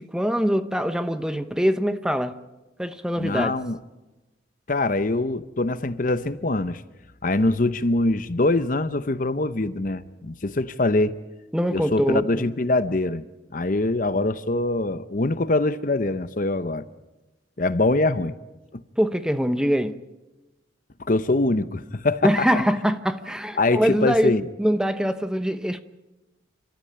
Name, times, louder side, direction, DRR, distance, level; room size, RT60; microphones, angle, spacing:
voice 1, 0.0-2.4 2.8-3.5 11.5-12.5 19.0-20.0 22.2-25.8, equal, 5° right, 0.8 m, -23 dB
voice 2, 3.2-3.8 4.7-6.8 7.2-11.2 11.7-13.2 13.5-16.9 17.6-18.3 21.1-22.5 23.6-24.4, left 2 dB, 45° left, 0.8 m, -23 dB
28.5 x 13.5 x 8.8 m
head